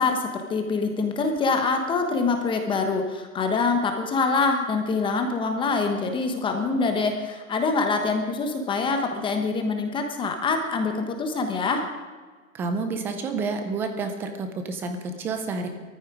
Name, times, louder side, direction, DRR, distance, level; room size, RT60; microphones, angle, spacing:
voice 1, 0.0-11.9, left 4 dB, 10° left, 5 dB, 1.2 m, -25 dB
voice 2, 12.5-15.7, right 4 dB, 5° right, 6 dB, 0.4 m, -29 dB
18.5 x 14.5 x 5.0 m, 1.4 s
hypercardioid pair, 150°, 41 cm